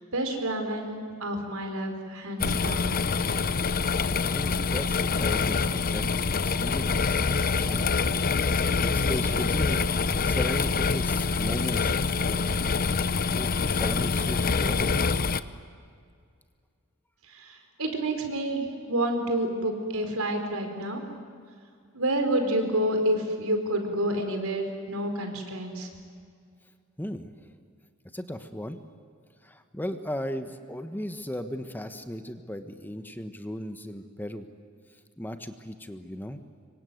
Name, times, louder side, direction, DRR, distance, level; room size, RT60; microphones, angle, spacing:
voice 1, 0.1-3.0 17.3-21.0 21.9-25.9, right 1 dB, 80° right, 5 dB, 4.7 m, -29 dB
sound 1, 2.4-15.4, left 4 dB, 45° left, 0.8 m, -25 dB
voice 2, 4.2-7.9 8.8-9.8 10.2-12.5 13.3-14.9 27.0-27.3 28.1-28.8 29.4-34.4 35.2-36.4, equal, 10° left, 8 dB, 1.3 m, -36 dB
26.0 x 24.0 x 9.4 m, 2.2 s
head